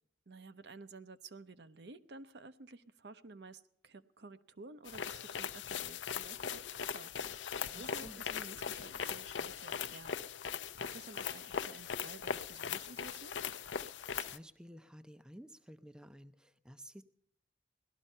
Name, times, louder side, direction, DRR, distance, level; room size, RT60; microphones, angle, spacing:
voice 1, 0.3-10.2 10.8-13.4, right 3 dB, 65° right, 11 dB, 0.7 m, -53 dB
sound 1, 4.9-14.4, left 7 dB, 90° left, 0.6 m, -40 dB
voice 2, 7.6-8.2 14.1-17.0, equal, 5° right, 9 dB, 0.5 m, -53 dB
18.0 x 12.5 x 5.4 m, 0.69 s
head